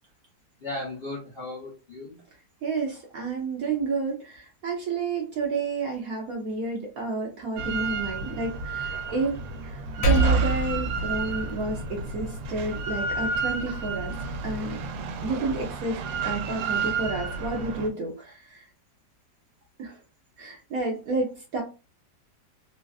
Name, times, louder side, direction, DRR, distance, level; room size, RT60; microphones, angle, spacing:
voice 1, 0.6-2.2, left 2 dB, 50° left, -5 dB, 0.7 m, -36 dB
voice 2, 2.6-9.3 9.6-14.1 14.4-14.8 15.2-16.0 16.2-18.6 19.8-20.0 20.4-21.6, right 3 dB, 65° right, 1 dB, 0.9 m, -30 dB
Drill, 7.6-17.9, right 4 dB, 85° right, 1.3 m, -32 dB
Percussion, 10.0-14.8, right 3 dB, 85° left, 1.3 m, -28 dB
3.3 x 2.3 x 2.3 m, 0.31 s
omnidirectional pair, 2.0 m